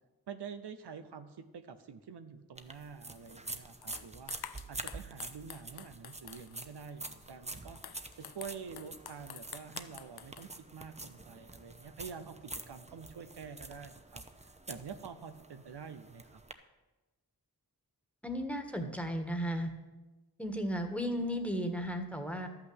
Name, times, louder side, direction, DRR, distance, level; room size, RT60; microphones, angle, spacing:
voice 1, 0.3-14.2 14.7-16.4, right 6 dB, 90° right, 9 dB, 0.8 m, -47 dB
sound 1, 2.6-16.5, right 2 dB, 15° right, 0.8 m, -47 dB
sound 2, 3.2-3.3 3.8-6.7 7.5-10.5, left 9 dB, 70° left, 0.6 m, -49 dB
voice 2, 18.2-19.7 20.4-22.5, equal, 5° left, 5 dB, 1.5 m, -34 dB
12.0 x 5.9 x 7.9 m, 1.1 s
cardioid pair, 45°, 39 cm